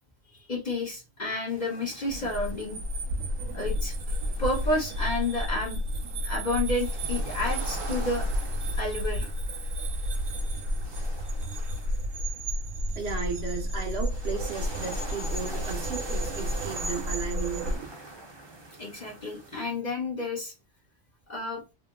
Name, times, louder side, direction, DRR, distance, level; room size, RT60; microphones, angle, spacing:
voice 1, 0.5-2.8 3.5-3.9 4.4-5.8 6.2-8.3 8.8-9.3 18.8-20.5 21.3-21.6, left 2 dB, 40° left, 0.7 m, -30 dB
sound 1, 1.5-19.6, right 2 dB, 30° right, 0.6 m, -44 dB
sound 2, 2.1-17.8, equal, 85° right, 1.1 m, -31 dB
voice 2, 13.0-17.9, right 5 dB, 60° right, 0.9 m, -35 dB
2.9 x 2.7 x 2.3 m
omnidirectional pair, 1.3 m